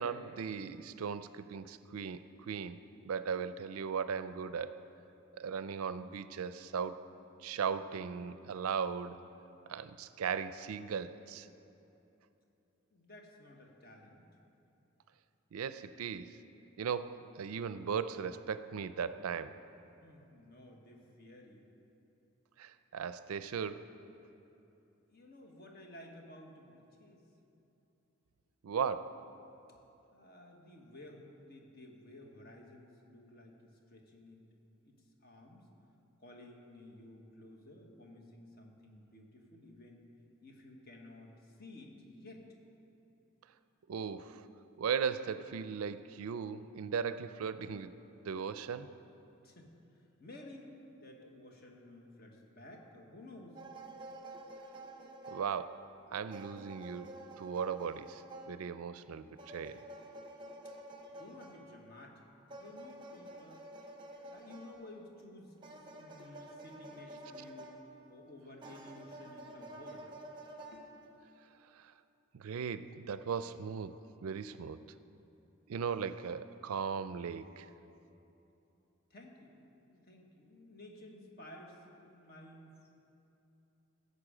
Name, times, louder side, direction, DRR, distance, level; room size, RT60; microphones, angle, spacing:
voice 1, 0.0-4.8 5.3-7.0 7.4-9.2 9.7-11.5 15.5-16.4 16.8-19.6 22.6-23.9 28.6-29.3 43.9-44.5 44.8-47.9 48.2-48.9 55.3-55.8 56.1-57.1 57.4-59.9 71.7-71.9 72.3-74.8 75.7-77.7, right 6 dB, 80° right, 13 dB, 0.4 m, -38 dB
voice 2, 12.9-14.2 20.0-21.6 25.1-27.2 30.1-34.4 34.8-35.7 36.2-40.0 40.4-42.4 49.4-53.6 61.1-62.2 62.5-63.7 64.3-67.8 68.1-70.1 70.7-71.0 79.1-79.6 79.9-82.7, left 1 dB, 45° left, 1 dB, 1.3 m, -54 dB
sound 1, 53.6-56.0 56.3-61.9 62.5-65.0 65.6-68.2 68.6-71.2, right 1 dB, 20° right, 0.8 m, -50 dB
15.5 x 6.9 x 4.9 m, 2.9 s
head